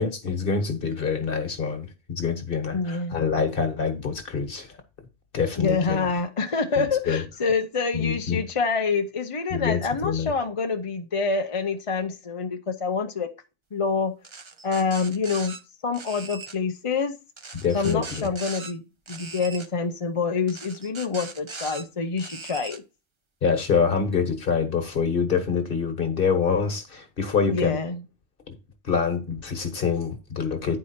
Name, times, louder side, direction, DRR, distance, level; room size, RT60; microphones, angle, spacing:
voice 1, 0.0-4.7 5.3-6.1 6.8-7.2 7.9-8.4 9.5-10.3 17.6-18.3 23.4-27.8 28.5-28.6 28.8-30.8, left 6 dB, 50° left, 1.5 m, -26 dB
voice 2, 2.7-3.2 5.6-13.3 13.7-14.1 14.6-15.6 15.8-17.1 17.7-18.8 19.1-22.8 27.5-28.0, left 4 dB, 35° left, 0.6 m, -26 dB
sound 1, 14.2-15.6 15.9-16.6 17.4-18.7 19.1-19.7 20.5-21.8 22.2-22.8, right 4 dB, 30° right, 0.6 m, -39 dB
9.8 x 4.8 x 4.3 m
omnidirectional pair, 1.2 m